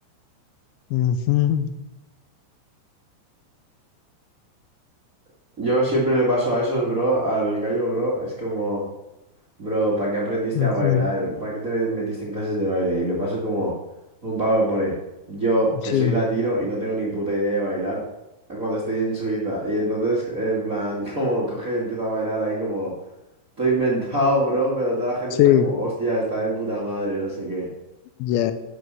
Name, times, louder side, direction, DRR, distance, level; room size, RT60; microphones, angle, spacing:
voice 1, 0.9-1.7 10.5-11.1 15.9-16.2 25.4-25.7 28.2-28.5, left 11 dB, 80° left, 9 dB, 2.9 m, -19 dB
voice 2, 5.6-8.8 9.6-13.7 14.2-14.9 15.3-18.0 18.5-22.9 23.6-27.7, right 1 dB, 60° right, -4 dB, 0.8 m, -24 dB
11.0 x 7.0 x 6.2 m, 0.97 s
omnidirectional pair, 5.6 m